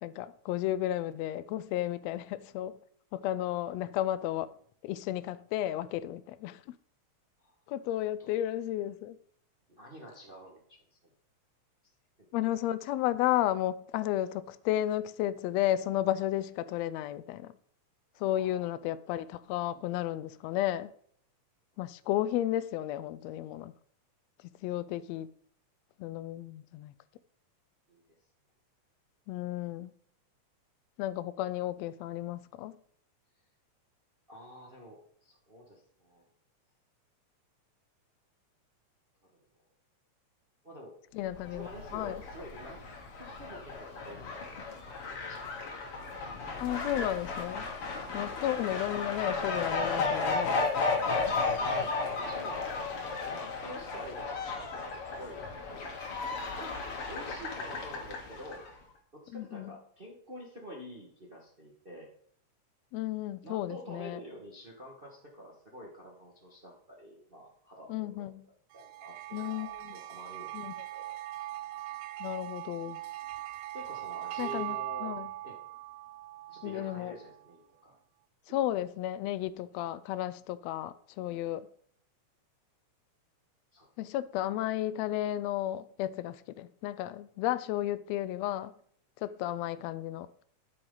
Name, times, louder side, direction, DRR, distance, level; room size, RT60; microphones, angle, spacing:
voice 1, 0.0-2.8 3.1-4.5 4.8-6.6 7.7-9.2 12.3-17.5 18.2-20.9 21.8-23.7 24.6-25.3 26.0-26.9 29.3-29.9 31.0-32.7 41.1-42.2 46.6-47.7 48.1-50.6 59.3-59.7 62.9-64.2 67.9-68.4 69.3-69.9 70.5-70.8 72.2-73.0 74.4-74.8 75.0-75.3 76.6-77.1 78.5-81.7 84.0-88.7 89.2-90.4, left 13 dB, 80° left, 1.5 m, -33 dB
voice 2, 9.7-10.6 10.9-11.1 18.1-18.7 27.9-28.0 34.3-36.3 39.3-39.4 40.6-40.9 41.5-42.8 43.2-45.4 51.6-52.8 53.2-55.4 55.7-56.8 57.1-58.6 59.1-62.1 63.4-68.3 68.7-70.5 70.9-71.1 73.7-75.1 75.4-75.6 76.5-78.0 78.5-78.8 83.7-83.9, equal, 30° right, 0.9 m, -48 dB
Fowl, 41.3-58.7, left 4 dB, 55° left, 2.2 m, -34 dB
sound 1, 68.7-77.4, right 16 dB, 80° right, 1.8 m, -40 dB
12.5 x 6.0 x 3.8 m
omnidirectional pair, 3.4 m